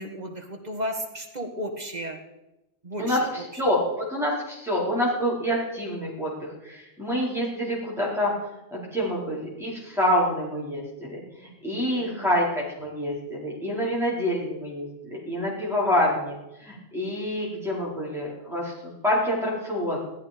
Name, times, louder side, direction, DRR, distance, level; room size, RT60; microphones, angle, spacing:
voice 1, 0.0-2.2 2.8-3.3 3.5-3.6 12.0-12.3, equal, 35° right, 2 dB, 2.0 m, -34 dB
voice 2, 3.0-8.3 8.7-20.0, equal, ahead, -6 dB, 4.8 m, -27 dB
15.5 x 13.5 x 5.3 m, 0.96 s
omnidirectional pair, 1.2 m